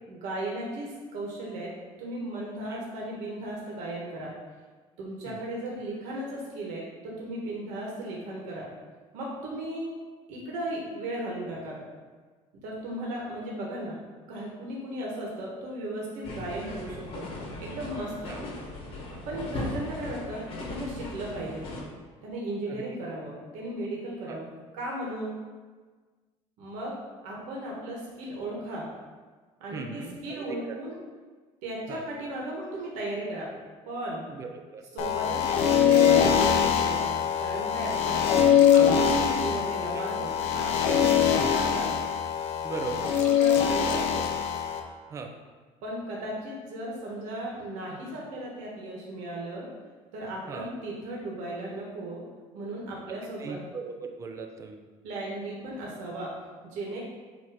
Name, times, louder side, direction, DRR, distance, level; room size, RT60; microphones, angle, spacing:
voice 1, 0.1-1.7 2.0-4.3 5.0-8.7 9.1-9.9 10.3-11.8 12.6-14.0 14.3-17.3 17.6-18.3 19.3-20.4 20.7-21.6 22.2-24.5 24.7-25.4 26.6-26.9 27.2-28.9 29.6-31.0 31.6-33.5 33.9-34.3 34.9-37.1 37.4-38.3 38.7-41.9 43.1-44.3 45.8-49.7 50.1-52.2 52.5-53.6 55.0-56.3 56.6-57.0, right 1 dB, 85° right, -3 dB, 1.4 m, -36 dB
sound 1, 16.2-21.8, left 1 dB, 50° left, 1.1 m, -38 dB
voice 2, 29.7-30.9 31.9-32.1 34.3-34.8 41.3-41.6 42.6-43.1 45.1-45.3 50.5-50.7 53.1-54.8, right 4 dB, 25° right, 4 dB, 0.5 m, -38 dB
sound 2, 35.0-44.8, left 8 dB, 90° left, 0.7 m, -23 dB
7.6 x 2.8 x 5.0 m, 1.4 s
cardioid pair, 180°, 12 cm